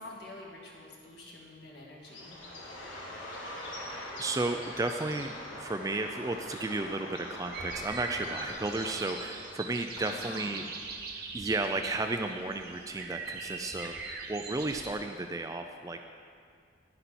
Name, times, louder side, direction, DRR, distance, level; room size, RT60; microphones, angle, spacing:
voice 1, 0.0-2.4 10.0-10.6, left 1 dB, 55° left, -3 dB, 2.1 m, -46 dB
Bird, 2.0-9.8, left 1 dB, 90° left, 2.0 m, -43 dB
voice 2, 4.2-10.6 11.3-16.0, right 2 dB, 15° right, 6 dB, 0.3 m, -33 dB
sound 1, 7.5-14.9, right 4 dB, 55° right, 0.9 m, -41 dB
11.0 x 10.0 x 4.2 m, 2.2 s
head